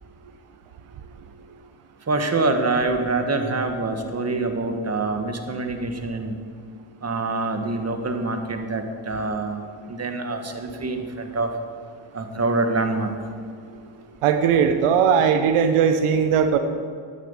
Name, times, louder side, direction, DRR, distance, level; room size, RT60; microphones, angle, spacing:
voice 1, 2.1-6.3 7.0-9.6 9.9-11.5 12.1-13.1, right 3 dB, 30° right, 6 dB, 1.8 m, -25 dB
voice 2, 14.2-16.6, right 7 dB, 85° right, 8 dB, 1.0 m, -18 dB
12.0 x 9.4 x 7.5 m, 2.2 s
cardioid pair, 75°, 50 cm